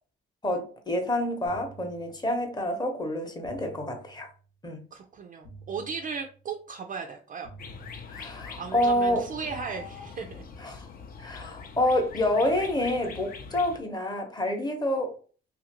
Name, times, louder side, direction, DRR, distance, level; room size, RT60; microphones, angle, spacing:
voice 1, 0.4-4.3 4.6-4.8 8.1-9.2 10.6-10.9 11.2-15.2, left 1 dB, 20° left, 0.8 m, -28 dB
sound 1, 1.5-2.6 3.4-4.6 5.4-6.6 7.4-8.6 9.4-10.6, right 4 dB, 85° left, 0.9 m, -51 dB
voice 2, 4.9-7.5 8.6-10.4, right 5 dB, 45° right, 0.4 m, -36 dB
sound 2, 7.6-13.8, left 5 dB, 45° left, 0.5 m, -43 dB
2.8 x 2.5 x 2.8 m
cardioid pair, 90°, 20 cm